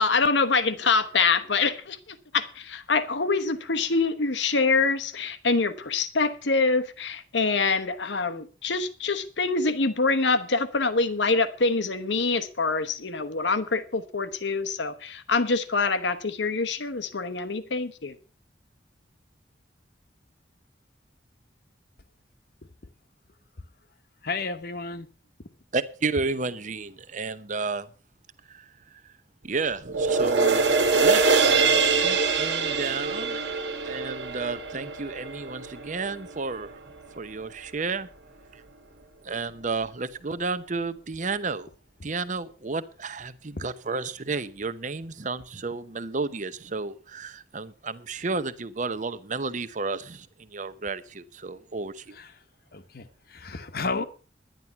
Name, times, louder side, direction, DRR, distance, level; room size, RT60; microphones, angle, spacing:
voice 1, 0.0-18.1, left 4 dB, 90° left, 1.1 m, -25 dB
voice 2, 24.2-25.1 43.6-43.7 52.2-52.3 52.7-54.1, left 4 dB, 60° left, 1.1 m, -32 dB
voice 3, 25.7-27.9 28.5-29.1 29.4-30.6 30.9-31.6 32.0-33.4 33.8-36.8 37.2-38.1 38.5-38.6 39.2-41.7 42.0-52.2, right 4 dB, 45° right, 0.8 m, -32 dB
sound 1, 29.9-36.4 36.9-37.0, right 4 dB, 85° right, 1.8 m, -24 dB
11.0 x 10.5 x 5.7 m
head